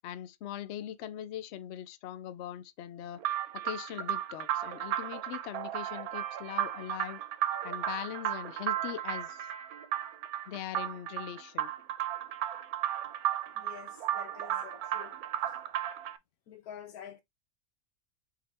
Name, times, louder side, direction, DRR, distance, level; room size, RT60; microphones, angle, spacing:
voice 1, 0.0-3.2 3.6-7.2 7.6-9.5 10.5-11.7, left 11 dB, 65° left, 0.7 m, -41 dB
sound 1, 3.2-16.2, right 11 dB, 90° right, 1.1 m, -34 dB
voice 2, 13.5-15.2 16.5-17.2, left 9 dB, 90° left, 1.4 m, -48 dB
4.0 x 2.9 x 4.3 m
omnidirectional pair, 1.5 m